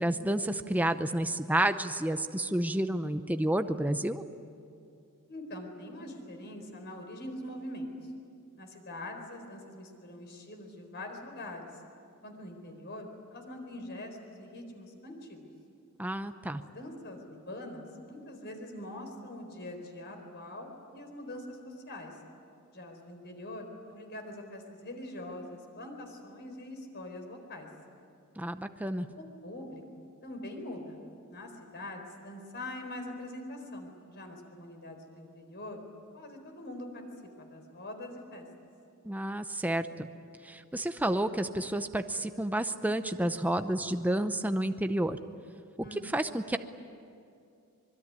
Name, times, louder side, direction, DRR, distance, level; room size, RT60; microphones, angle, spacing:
voice 1, 0.0-4.2 16.0-16.6 28.4-29.1 39.0-40.1 40.4-45.2 46.0-46.6, right 1 dB, 5° right, 8 dB, 0.7 m, -30 dB
voice 2, 5.3-7.9 8.6-11.7 12.2-15.5 16.5-22.2 22.7-27.7 29.2-31.0 31.3-35.8 36.1-37.0 37.4-38.5 45.8-46.0, left 1 dB, 50° left, 4 dB, 4.3 m, -43 dB
25.5 x 22.0 x 9.7 m, 2.5 s
head